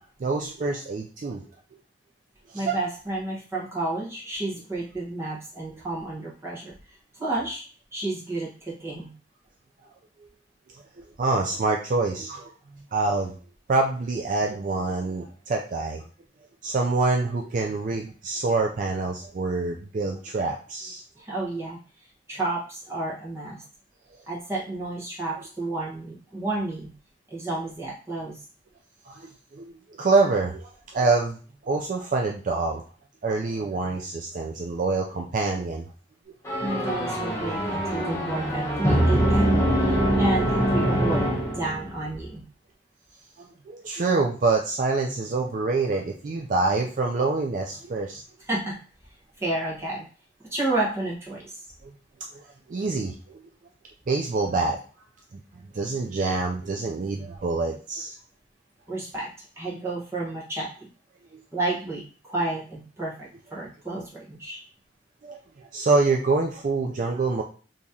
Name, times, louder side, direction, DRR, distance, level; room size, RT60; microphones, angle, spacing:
voice 1, 0.2-1.4 2.5-2.8 11.0-12.5 12.9-13.4 13.7-16.0 16.6-21.0 29.1-29.7 30.0-31.4 31.6-32.8 33.2-35.9 43.4-48.2 51.8-51.9 52.3-52.4 52.7-53.4 54.1-54.8 55.3-55.4 55.7-58.1 65.2-65.4 65.7-67.4, right 3 dB, 45° right, 1 dB, 0.4 m, -26 dB
voice 2, 2.5-7.6 7.9-9.1 21.2-21.8 22.3-23.6 24.3-26.9 27.3-28.4 36.6-42.4 48.5-48.8 49.4-50.0 50.4-51.5 58.9-59.3 59.6-60.9 61.5-64.6, right 2 dB, 15° right, -6 dB, 1.1 m, -31 dB
sound 1, 36.4-42.0, equal, 15° left, 0.9 m, -23 dB
3.0 x 2.8 x 3.5 m, 0.38 s
head